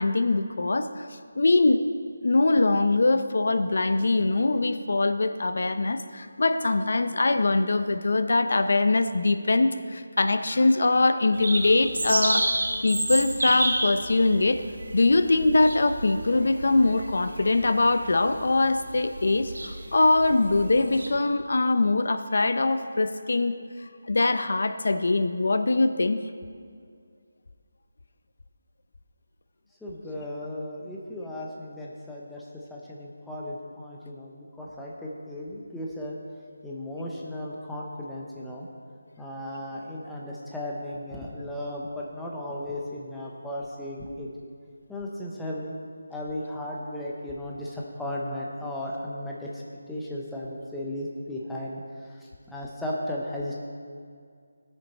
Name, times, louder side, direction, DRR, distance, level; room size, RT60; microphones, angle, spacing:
voice 1, 0.0-1.8 2.2-14.6 14.9-23.5 24.0-26.2, left 2 dB, 60° left, 9 dB, 0.5 m, -23 dB
sound 1, 11.3-21.1, right 2 dB, 65° right, 1.8 m, -31 dB
voice 2, 29.8-36.2 36.6-38.7 39.2-44.3 44.9-45.8 46.1-49.6 49.9-53.6, left 1 dB, ahead, -5 dB, 0.6 m, -35 dB
17.5 x 6.6 x 4.1 m, 2.2 s
figure-of-eight pair, 175°, 0 cm